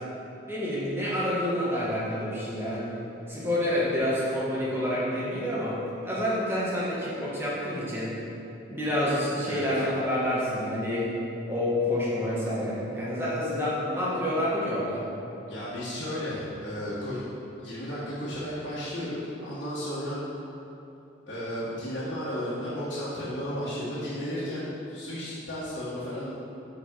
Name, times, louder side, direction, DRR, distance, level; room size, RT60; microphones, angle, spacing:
voice 1, 0.5-2.8 3.3-5.8 6.0-8.1 8.7-11.1 11.5-15.0, left 1 dB, 10° right, -8 dB, 1.5 m, -28 dB
voice 2, 15.5-17.2 17.6-20.2 21.3-26.3, equal, 65° left, -11 dB, 1.7 m, -34 dB
6.5 x 6.4 x 4.7 m, 2.9 s
head